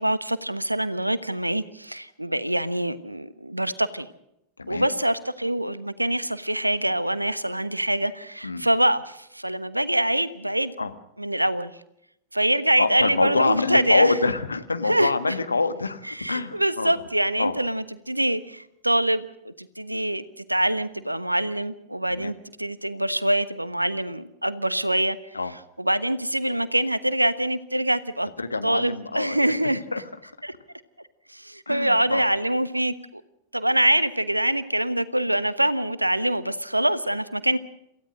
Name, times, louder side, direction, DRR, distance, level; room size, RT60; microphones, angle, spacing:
voice 1, 0.0-4.1 4.7-10.8 11.2-11.8 12.3-14.2 14.9-15.1 16.1-25.4 25.8-28.3 28.6-29.8 30.4-30.5 31.3-33.2 33.5-37.6, right 1 dB, 85° right, 1.2 m, -25 dB
voice 2, 4.6-4.9 8.4-8.6 10.8-10.9 12.8-16.9 17.4-17.5 22.1-22.3 25.3-25.5 28.4-29.5 29.9-30.0 31.6-32.2, left 3 dB, 80° left, 1.6 m, -25 dB
28.0 x 16.0 x 6.4 m
figure-of-eight pair, 90°, 0 cm